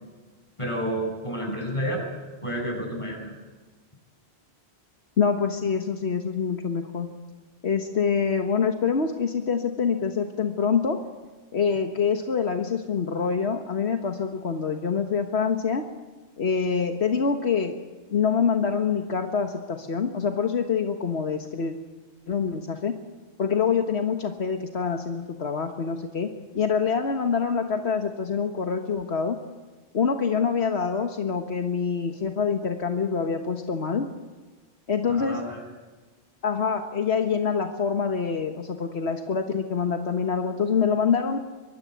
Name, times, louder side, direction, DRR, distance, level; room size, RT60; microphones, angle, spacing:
voice 1, 0.6-2.0 2.4-3.3 35.2-35.6, equal, 30° left, 1 dB, 8.0 m, -30 dB
voice 2, 5.2-7.1 7.6-11.0 11.5-15.8 16.4-17.8 18.1-21.7 22.3-22.9 23.4-29.4 29.9-34.1 34.9-35.4 36.4-41.4, left 6 dB, 80° left, 5 dB, 1.7 m, -25 dB
24.0 x 23.5 x 9.5 m, 1.3 s
omnidirectional pair, 1.1 m